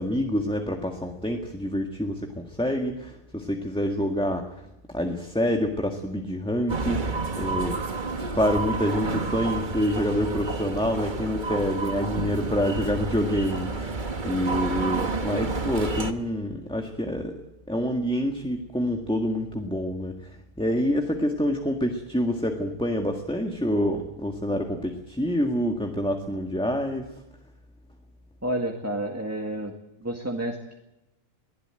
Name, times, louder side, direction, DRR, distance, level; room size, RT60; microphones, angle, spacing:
voice 1, 0.0-4.4 4.9-7.8 8.3-17.3 17.7-20.2 20.6-27.1, equal, 5° left, 3 dB, 1.7 m, -27 dB
sound 1, 6.7-16.1, right 3 dB, 40° right, 1.5 m, -30 dB
voice 2, 28.4-29.7 30.0-30.7, right 1 dB, 10° right, 3 dB, 2.1 m, -30 dB
23.0 x 16.5 x 9.0 m, 0.93 s
omnidirectional pair, 1.4 m